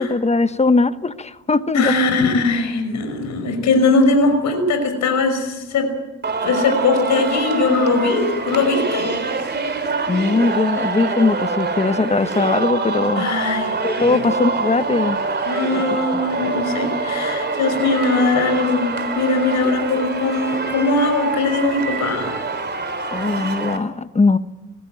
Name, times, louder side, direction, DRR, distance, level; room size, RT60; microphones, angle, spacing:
voice 1, 0.0-1.9 10.1-13.3 13.8-15.2 23.1-24.4, left 3 dB, 20° left, 12 dB, 1.0 m, -19 dB
voice 2, 1.7-6.0 6.4-9.2 13.2-14.3 15.4-22.4, left 3 dB, 70° left, 6 dB, 5.6 m, -20 dB
Singing, 6.2-23.8, right 4 dB, 35° right, 3.5 m, -25 dB
21.0 x 15.5 x 9.0 m, 1.1 s
cardioid pair, 90°, 30 cm